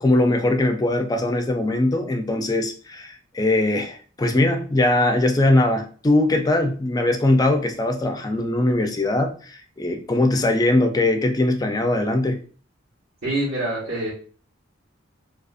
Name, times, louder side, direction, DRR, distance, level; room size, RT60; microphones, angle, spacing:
voice 1, 0.0-12.4, left 2 dB, 20° left, 5 dB, 0.3 m, -21 dB
voice 2, 13.2-14.1, right 1 dB, 70° right, -10 dB, 1.0 m, -25 dB
2.5 x 2.4 x 2.4 m, 0.40 s
head